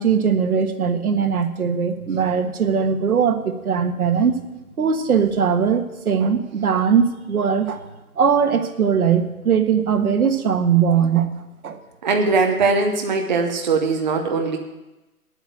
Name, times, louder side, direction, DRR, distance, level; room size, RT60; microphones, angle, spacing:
voice 1, 0.0-4.4 4.8-7.8 8.2-11.3 11.6-11.8, right 7 dB, 70° right, 7 dB, 1.5 m, -20 dB
voice 2, 12.0-14.6, right 4 dB, 30° right, 2 dB, 0.8 m, -20 dB
9.7 x 8.3 x 9.2 m, 1.0 s
hypercardioid pair, 170°, 45 cm